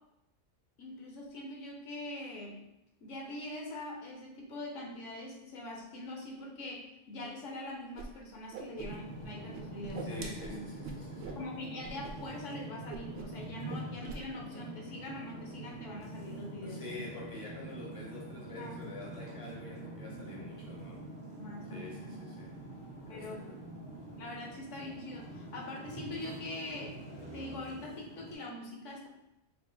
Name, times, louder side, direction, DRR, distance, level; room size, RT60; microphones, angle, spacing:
voice 1, 0.8-2.6 3.0-10.6 11.4-17.0 18.6-18.8 21.3-22.5 23.1-23.5 24.2-27.0 27.3-29.1, left 1 dB, 70° left, -1 dB, 1.1 m, -43 dB
Whoosh swoosh swish, 7.9-8.1 8.3-9.3 9.5-11.4 11.8-12.1 12.4-12.5 12.9-13.4 13.7-14.2, right 4 dB, 60° right, 0.7 m, -44 dB
sound 1, 8.8-28.3, right 1 dB, 10° left, 1.2 m, -45 dB
voice 2, 10.0-11.4 16.6-21.0 21.7-22.6 23.1-23.6, left 3 dB, 25° left, -3 dB, 1.0 m, -47 dB
4.7 x 3.7 x 2.2 m, 0.87 s
omnidirectional pair, 1.3 m